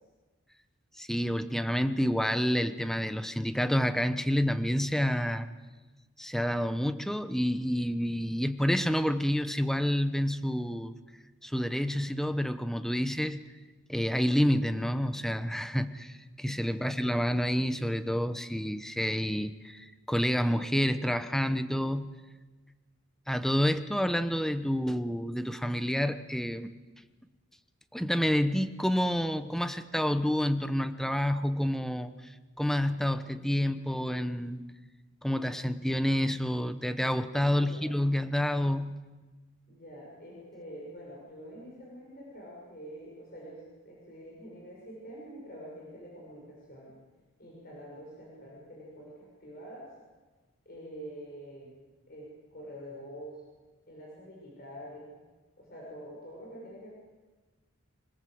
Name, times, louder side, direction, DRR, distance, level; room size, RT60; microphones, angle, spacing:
voice 1, 1.0-5.5 6.2-10.9 11.4-13.4 13.9-22.1 23.3-26.7 27.9-32.3 32.6-34.6 35.2-39.0, equal, ahead, 10 dB, 0.9 m, -29 dB
voice 2, 16.7-17.1 37.5-37.9 39.7-46.9 47.4-49.9 50.6-51.7 52.1-53.4 53.9-55.1 55.6-56.9, equal, 45° left, -3 dB, 6.5 m, -46 dB
26.0 x 20.0 x 7.9 m, 1.3 s
head